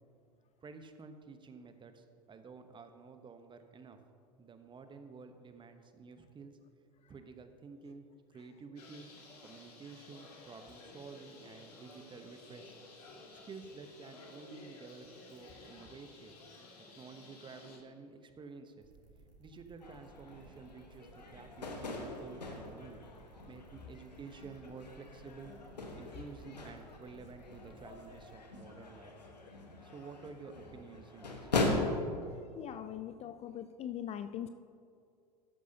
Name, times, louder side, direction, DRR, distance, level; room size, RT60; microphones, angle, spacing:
voice 1, 0.6-4.0 4.4-6.6 7.1-8.1 8.3-9.1 9.4-12.7 13.3-16.3 16.8-18.9 19.4-23.0 23.5-25.5 26.0-29.1 29.8-31.5, right 4 dB, 25° right, 8 dB, 1.0 m, -51 dB
Bird, 8.8-17.8, left 3 dB, 75° left, 2.1 m, -54 dB
sound 1, 18.8-28.3, right 3 dB, 80° right, 2.4 m, -61 dB
sound 2, 19.8-31.7, left 3 dB, 90° left, 1.3 m, -41 dB
voice 2, 32.3-34.5, left 10 dB, 30° left, 11 dB, 0.4 m, -42 dB
13.5 x 11.0 x 2.8 m, 2.3 s
hypercardioid pair, 80°, 21 cm